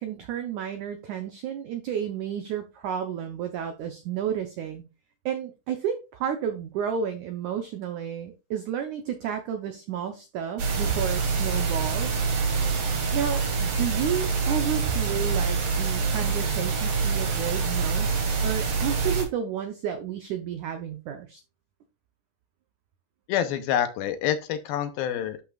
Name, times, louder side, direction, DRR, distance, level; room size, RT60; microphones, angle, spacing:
voice 1, 0.0-4.8 5.2-12.2 13.1-21.4, right 8 dB, 85° right, 1.7 m, -31 dB
sound 1, 10.6-19.2, right 5 dB, 50° right, 2.5 m, -26 dB
voice 2, 23.3-25.4, left 10 dB, 75° left, 2.4 m, -27 dB
11.5 x 5.8 x 2.4 m
omnidirectional pair, 4.6 m